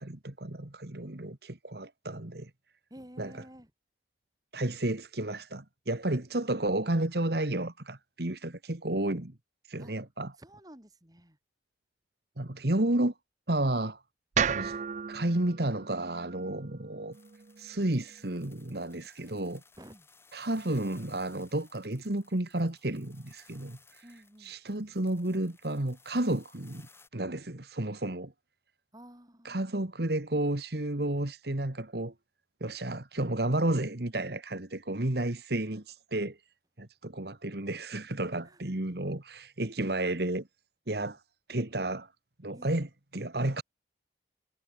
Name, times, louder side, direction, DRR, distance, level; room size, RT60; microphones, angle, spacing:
voice 1, 0.0-2.5 3.2-3.3 4.5-9.3 9.7-10.3 12.4-13.1 13.5-14.0 14.5-14.8 15.1-17.2 17.6-19.6 20.3-24.0 24.4-26.9 27.1-28.3 29.5-32.1 32.6-36.4 36.8-40.5 40.9-41.2 41.5-42.1 42.4-42.9 43.1-43.6, right 1 dB, 60° right, 1.7 m, -32 dB
voice 2, 2.9-3.7 9.8-9.9 10.4-11.4 19.8-20.1 24.0-24.6 28.9-29.8 38.4-38.6 41.1-41.2 42.5-42.8, equal, 20° right, 4.1 m, -52 dB
sound 1, 14.3-18.5, right 7 dB, 40° right, 0.4 m, -35 dB
sound 2, 17.1-27.1, left 4 dB, 15° left, 7.2 m, -61 dB
head